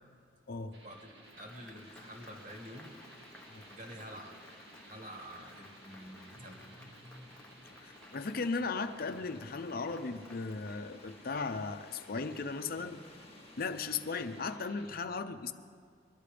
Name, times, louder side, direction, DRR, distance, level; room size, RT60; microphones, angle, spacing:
voice 1, 0.5-0.8 3.5-3.6 7.8-13.0 13.6-15.5, left 4 dB, 55° left, 9 dB, 0.6 m, -37 dB
sound 1, 0.7-14.9, right 1 dB, 75° right, 2.3 m, -58 dB
Applause, 0.9-13.6, left 1 dB, 5° left, 1.0 m, -59 dB
voice 2, 1.4-2.9 3.7-4.4 4.8-7.3, equal, 45° right, 1 dB, 2.2 m, -48 dB
sound 2, 1.8-14.6, left 3 dB, 35° left, 1.3 m, -59 dB
21.5 x 11.5 x 5.1 m, 2.1 s
head